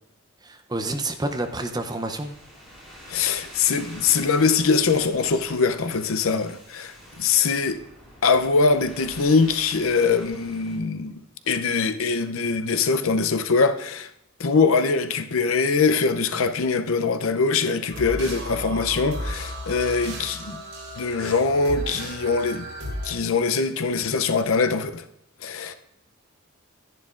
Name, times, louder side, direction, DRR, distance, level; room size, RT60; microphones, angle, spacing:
voice 1, 0.4-2.3 25.6-25.7, right 2 dB, 20° right, 0.6 m, -29 dB
sound 1, 1.2-10.8, equal, ahead, 3.5 m, -46 dB
voice 2, 3.1-7.8 8.2-11.1 11.5-14.1 14.4-20.6 21.0-22.7 23.0-25.0 25.4-25.7, left 4 dB, 75° left, 0.6 m, -22 dB
sound 2, 17.9-23.1, equal, 65° right, 3.9 m, -34 dB
11.5 x 10.5 x 2.5 m
head